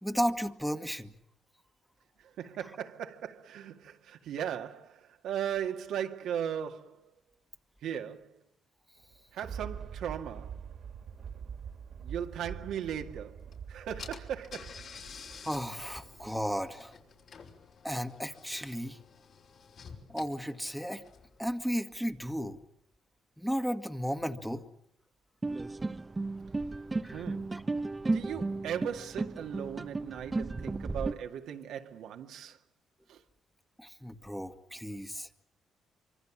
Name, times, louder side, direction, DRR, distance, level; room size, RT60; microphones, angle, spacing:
voice 1, 0.0-1.1 15.4-16.9 17.8-19.0 20.1-21.0 21.4-22.6 23.4-24.6 27.0-27.2 27.5-27.6 33.8-35.3, equal, ahead, 1.8 m, -34 dB
voice 2, 2.4-7.1 7.8-8.3 9.3-10.6 12.0-14.9 27.1-27.6 28.1-32.6 33.1-33.2, right 9 dB, 80° right, 2.0 m, -37 dB
Thunder, 9.0-16.5 17.0-17.1, right 7 dB, 65° right, 2.5 m, -44 dB
Car / Engine, 13.5-13.6 14.0-21.4, left 6 dB, 60° left, 5.5 m, -50 dB
sound 1, 25.4-31.1, right 3 dB, 20° right, 1.0 m, -34 dB
25.5 x 25.0 x 7.3 m
cardioid pair, 90°, 0 cm